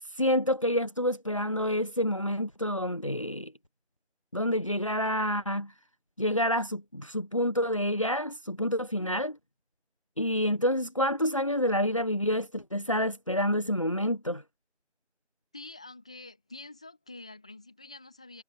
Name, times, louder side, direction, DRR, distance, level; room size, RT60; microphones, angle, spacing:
voice 1, 0.1-3.5 4.3-5.7 6.2-9.4 10.2-14.4, equal, 25° left, 1.4 m, -28 dB
voice 2, 15.5-18.4, left 2 dB, 5° left, 1.9 m, -47 dB
figure-of-eight pair, 170°, 35 cm